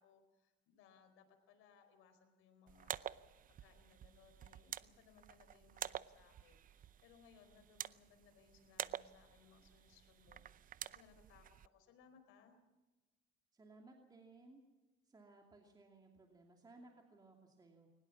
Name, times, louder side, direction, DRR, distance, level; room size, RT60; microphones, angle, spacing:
voice 1, 0.0-12.6, left 6 dB, 85° left, 8 dB, 4.5 m, -67 dB
sound 1, 2.7-11.7, right 10 dB, 40° right, 0.6 m, -49 dB
voice 2, 13.5-14.6 15.1-17.9, right 2 dB, 20° right, 2 dB, 2.6 m, -61 dB
22.5 x 20.0 x 7.2 m, 1.1 s
cardioid pair, 130°, 20 cm